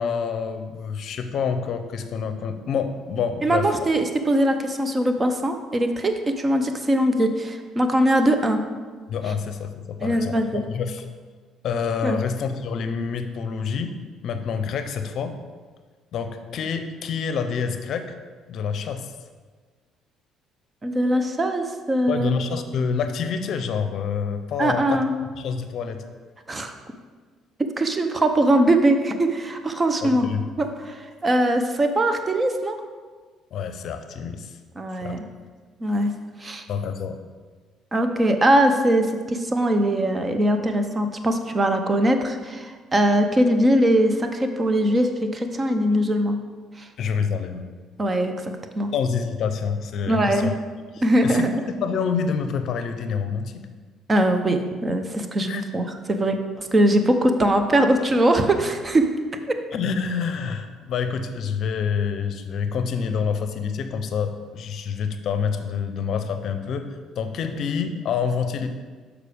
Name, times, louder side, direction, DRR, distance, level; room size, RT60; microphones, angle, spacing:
voice 1, 0.0-3.7 9.1-11.0 11.6-13.9 14.2-15.4 16.1-18.1 18.5-19.1 22.1-25.0 25.3-26.0 30.0-30.4 33.5-34.5 35.0-35.2 36.7-37.1 47.0-47.6 48.9-50.5 50.9-51.5 51.8-53.5 55.5-55.6 59.7-68.7, left 6 dB, 60° left, 8 dB, 0.6 m, -27 dB
voice 2, 3.4-8.6 10.0-10.7 12.0-12.2 20.8-22.4 24.6-25.1 26.5-26.7 27.8-30.3 30.6-32.8 34.8-35.2 35.8-36.1 36.4-36.6 37.9-46.3 46.8-46.9 48.0-48.9 50.1-50.6 51.0-51.5 54.1-59.1, right 1 dB, 30° right, 7 dB, 0.8 m, -21 dB
6.6 x 4.9 x 5.0 m, 1.5 s
supercardioid pair, 65°, 0 cm